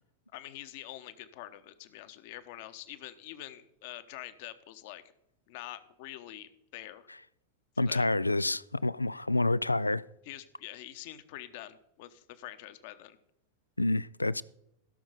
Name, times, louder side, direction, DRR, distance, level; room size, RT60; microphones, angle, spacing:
voice 1, 0.3-5.0 5.5-7.1 7.7-8.0 10.3-13.2, left 14 dB, 50° left, 1.0 m, -45 dB
voice 2, 7.8-10.0 13.8-14.4, left 2 dB, 85° left, 0.3 m, -28 dB
16.5 x 6.3 x 5.0 m
figure-of-eight pair, 90°, 0 cm